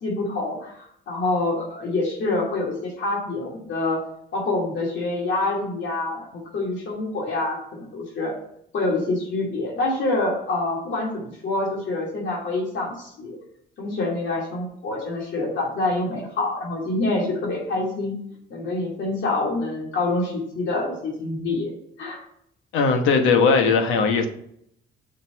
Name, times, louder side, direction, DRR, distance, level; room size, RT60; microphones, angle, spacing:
voice 1, 0.0-4.0 4.3-6.3 6.5-8.3 8.7-13.4 13.8-18.1 18.5-21.7 22.0-22.2, left 2 dB, 70° left, -2 dB, 2.5 m, -26 dB
voice 2, 22.7-24.3, left 5 dB, 90° left, 5 dB, 1.1 m, -18 dB
6.5 x 4.5 x 6.1 m, 0.70 s
cardioid pair, 90°, 20 cm